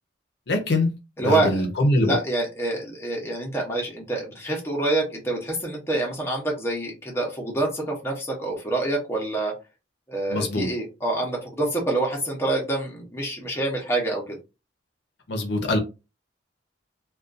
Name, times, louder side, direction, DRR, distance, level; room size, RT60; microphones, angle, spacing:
voice 1, 0.5-2.2 10.3-10.7 15.3-15.8, left 1 dB, 65° left, 3 dB, 0.6 m, -23 dB
voice 2, 1.2-1.6 2.0-9.5 10.1-14.4, right 2 dB, 15° left, -1 dB, 0.7 m, -26 dB
2.4 x 2.3 x 2.4 m, 0.27 s
head